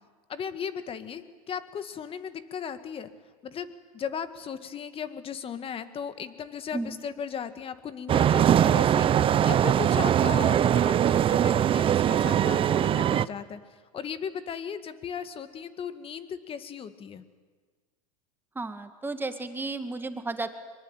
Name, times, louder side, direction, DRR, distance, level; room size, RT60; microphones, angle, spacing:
voice 1, 0.3-3.1 3.4-13.6 13.9-17.2, left 7 dB, 30° left, 11 dB, 2.1 m, -37 dB
sound 1, 8.1-13.3, right 10 dB, 30° right, 0.7 m, -22 dB
voice 2, 18.6-20.5, right 3 dB, 10° right, 8 dB, 2.1 m, -33 dB
24.0 x 23.5 x 9.1 m, 1.5 s
hypercardioid pair, 105°, 19 cm